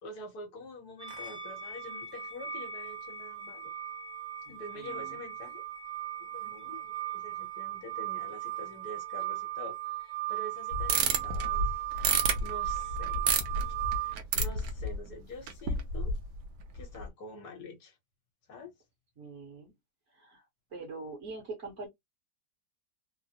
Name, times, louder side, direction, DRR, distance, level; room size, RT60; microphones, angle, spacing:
voice 1, 0.0-3.7 4.5-5.6 6.2-12.1 12.4-13.3 14.0-16.1 16.7-18.0 18.5-18.7, left 1 dB, 70° left, 1.5 m, -46 dB
sound 1, 1.0-14.2, right 13 dB, 35° right, 0.8 m, -37 dB
voice 2, 4.4-5.2 10.9-11.3 19.2-19.7 20.1-20.4 20.7-21.9, right 3 dB, 55° right, 1.7 m, -44 dB
sound 2, 10.7-15.1 15.5-16.4 16.8-17.0, right 4 dB, 70° right, 1.1 m, -30 dB
3.7 x 2.1 x 2.8 m
omnidirectional pair, 1.8 m